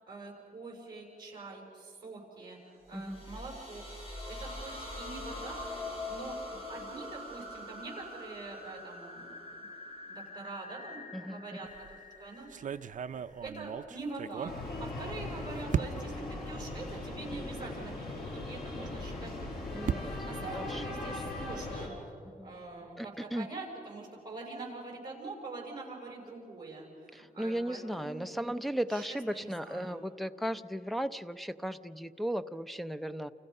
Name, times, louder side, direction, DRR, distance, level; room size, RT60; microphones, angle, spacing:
voice 1, 0.0-3.8 4.3-9.7 10.0-11.7 12.2-12.7 13.4-21.9 22.4-28.4 28.9-30.0, right 3 dB, 25° right, -1 dB, 6.0 m, -44 dB
sound 1, 2.9-13.5, left 2 dB, 40° left, 4.0 m, -44 dB
voice 2, 2.9-3.2 11.1-11.4 19.7-20.2 20.5-21.2 21.8-22.0 22.2-22.5 23.0-23.5 27.1-33.3, equal, ahead, 11 dB, 0.6 m, -36 dB
sound 2, 11.7-12.0 12.5-15.3 15.7-16.3 17.0-17.1 17.4-17.5 19.2-21.5, right 8 dB, 55° right, 0.5 m, -37 dB
sound 3, 14.5-21.9, left 2 dB, 80° left, 5.2 m, -39 dB
29.5 x 28.0 x 5.4 m, 2.6 s
wide cardioid pair, 165°, 16 cm